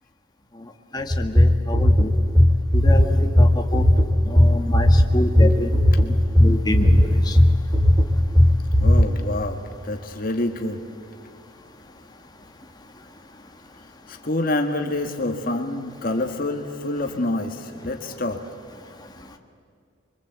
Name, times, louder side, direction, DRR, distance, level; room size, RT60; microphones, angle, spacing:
voice 1, 0.9-2.1 2.8-3.5 3.7-3.8 4.3-4.9 5.1-5.7 6.4-7.0, left 1 dB, 20° left, 2 dB, 2.0 m, -27 dB
sound 1, 1.1-9.0, left 1 dB, 20° right, 2.7 m, -16 dB
voice 2, 8.8-9.6 9.9-10.8 14.1-18.4, left 2 dB, 45° left, 4 dB, 1.8 m, -27 dB
30.0 x 24.0 x 8.2 m, 2.3 s
head